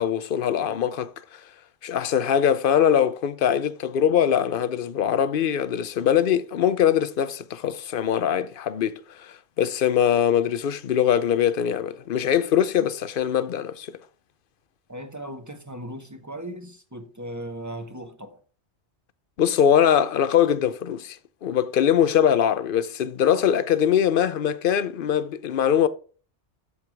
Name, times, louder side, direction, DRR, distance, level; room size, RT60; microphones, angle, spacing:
voice 1, 0.0-1.4 1.8-14.0 19.4-25.9, left 9 dB, 55° left, 0.7 m, -22 dB
voice 2, 14.9-18.4, right 1 dB, 15° right, 0.9 m, -37 dB
13.5 x 4.9 x 3.5 m
omnidirectional pair, 1.2 m